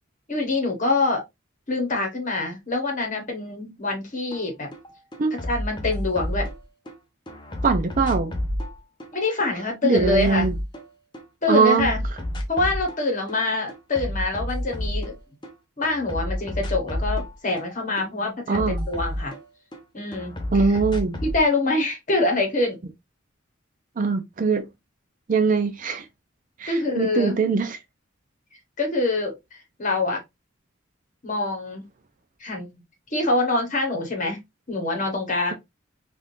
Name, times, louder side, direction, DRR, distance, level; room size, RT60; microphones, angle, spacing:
voice 1, 0.3-1.2 1.7-4.7 5.5-6.5 9.1-10.5 11.4-12.0 12.5-15.1 15.8-19.3 19.9-20.6 21.2-22.8 26.7-27.3 28.8-29.3 29.8-30.2 31.2-31.8 32.4-32.7 33.1-34.4 34.7-35.5, left 2 dB, 40° left, 1.3 m, -25 dB
sound 1, 4.3-4.4 4.7-6.9 7.3-11.2 11.5-13.0 13.3-15.5 15.8-19.8 20.1-21.4, equal, 20° left, 0.6 m, -30 dB
voice 2, 7.6-8.4 9.8-10.5 11.5-11.9 18.5-18.9 20.5-21.2 24.0-24.7 25.3-26.1 26.6-27.8, right 4 dB, 40° right, 0.4 m, -22 dB
3.5 x 2.5 x 2.6 m
head